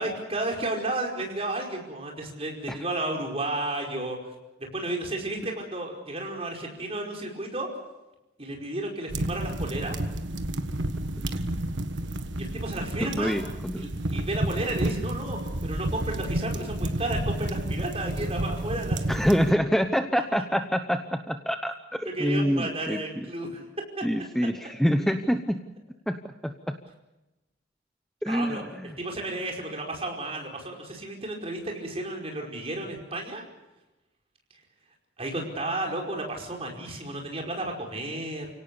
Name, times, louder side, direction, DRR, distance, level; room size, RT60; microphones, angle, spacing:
voice 1, 0.0-4.3 4.7-7.7 8.4-10.0 12.4-13.4 13.8-19.0 22.0-23.6 28.3-28.6 29.0-33.4 35.2-38.5, right 2 dB, 30° right, 1 dB, 5.1 m, -32 dB
sound 1, 9.1-19.5, right 1 dB, 70° right, 1.5 m, -31 dB
voice 2, 13.0-13.9 19.1-23.0 24.0-25.6 26.1-26.2 26.4-26.8 28.2-28.9, equal, ahead, 7 dB, 0.8 m, -26 dB
30.0 x 18.0 x 6.9 m, 1.0 s
head